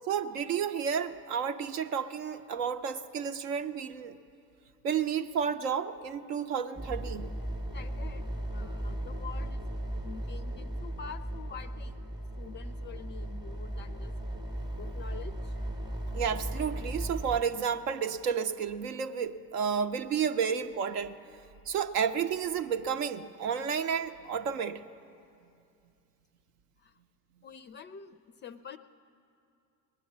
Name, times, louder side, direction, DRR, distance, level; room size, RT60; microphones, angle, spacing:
voice 1, 0.1-4.2 4.8-7.3 16.1-21.2 21.7-24.8, right 7 dB, 75° right, 8 dB, 0.8 m, -31 dB
sound 1, 6.7-17.4, right 1 dB, 10° right, 0.8 m, -37 dB
voice 2, 7.7-9.6 10.0-12.1 12.4-14.1 14.8-15.6 26.8-26.9 27.4-28.8, left 6 dB, 25° left, 11 dB, 0.3 m, -47 dB
19.5 x 10.0 x 7.3 m, 2.6 s
hypercardioid pair, 65°, 48 cm